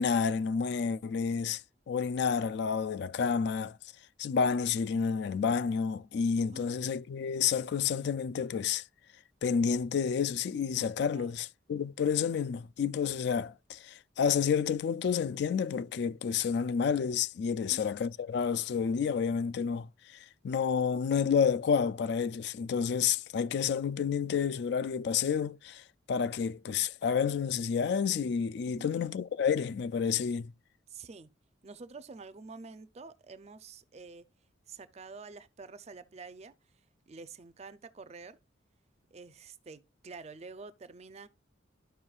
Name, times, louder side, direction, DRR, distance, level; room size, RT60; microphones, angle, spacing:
voice 1, 0.0-1.6 1.9-3.8 4.2-8.8 9.4-30.5, left 6 dB, 60° left, 0.3 m, -30 dB
voice 2, 30.9-31.3 31.6-34.3 34.7-36.5 37.1-38.4 39.1-41.3, right 4 dB, 35° right, 0.5 m, -48 dB
12.5 x 5.4 x 2.4 m
head